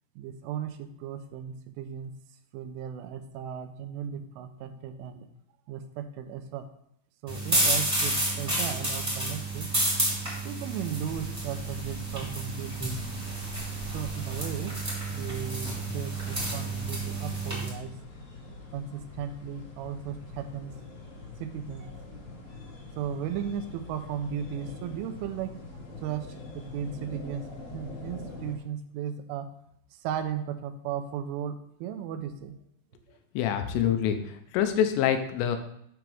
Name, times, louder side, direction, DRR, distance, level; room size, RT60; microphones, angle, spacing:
voice 1, 0.2-2.1 2.5-5.3 5.7-6.7 7.2-9.7 10.4-13.0 13.9-14.7 15.1-17.9 18.7-20.7 21.4-25.6 26.0-29.5 29.9-32.5, right 8 dB, 85° right, 8 dB, 3.1 m, -36 dB
sound 1, 7.3-17.7, right 1 dB, 5° right, 1.8 m, -30 dB
sound 2, 11.1-28.6, left 2 dB, 55° left, 3.4 m, -44 dB
voice 2, 33.4-35.6, left 9 dB, 90° left, 7 dB, 3.3 m, -26 dB
8.1 x 6.2 x 3.4 m, 0.73 s
omnidirectional pair, 5.5 m